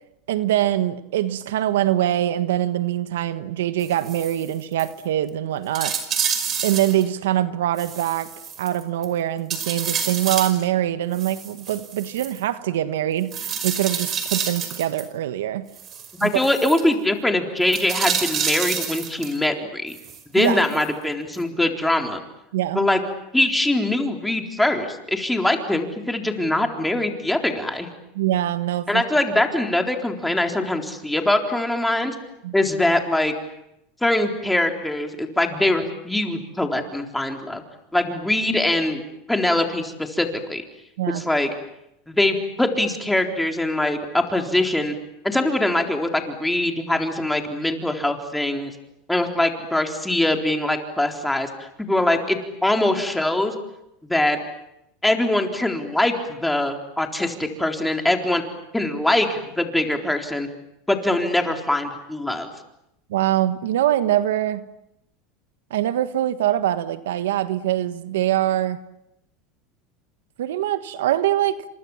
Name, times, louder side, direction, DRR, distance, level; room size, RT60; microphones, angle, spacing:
voice 1, 0.3-5.9 6.6-8.3 8.6-13.3 13.6-15.7 16.2-16.4 20.3-20.6 22.5-22.8 28.1-29.0 32.4-32.5 41.0-41.2 63.1-64.6 65.7-68.8 70.4-71.6, right 12 dB, 90° right, 1.4 m, -23 dB
sound 1, 3.8-4.5 4.8-4.9 5.3-5.4 5.7-7.1 7.8-9.1 9.5-10.6 11.1-12.4 13.3-15.1 15.8-16.8 17.7-19.4 19.9-20.9 21.3-21.4, right 7 dB, 35° right, 5.4 m, -28 dB
voice 2, 16.2-20.0 20.3-22.2 22.7-23.0 23.3-27.9 28.9-32.1 32.5-33.3 34.0-37.6 37.9-39.0 39.3-40.6 41.1-41.5 42.1-44.9 45.2-48.7 49.1-53.5 54.0-54.4 55.0-58.4 58.7-60.5 60.9-62.5, left 1 dB, 5° left, 3.9 m, -22 dB
30.0 x 26.0 x 7.3 m
supercardioid pair, 125°, 0 cm